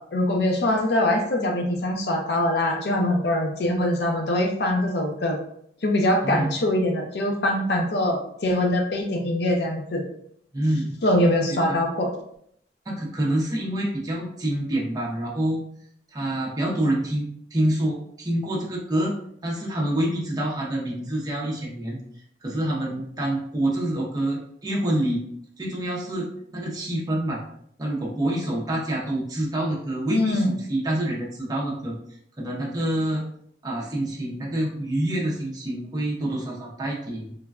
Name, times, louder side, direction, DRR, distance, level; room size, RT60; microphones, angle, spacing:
voice 1, 0.0-5.4 5.8-10.0 11.0-12.1 30.1-30.6, left 1 dB, 60° left, 1 dB, 0.5 m, -23 dB
voice 2, 10.5-11.0 11.5-11.8 12.9-15.6 16.1-19.1 19.4-22.0 22.4-25.2 25.6-27.4 27.8-32.0 32.4-33.2 33.6-37.3, right 1 dB, 20° right, -3 dB, 0.5 m, -27 dB
3.2 x 2.1 x 2.4 m, 0.68 s
head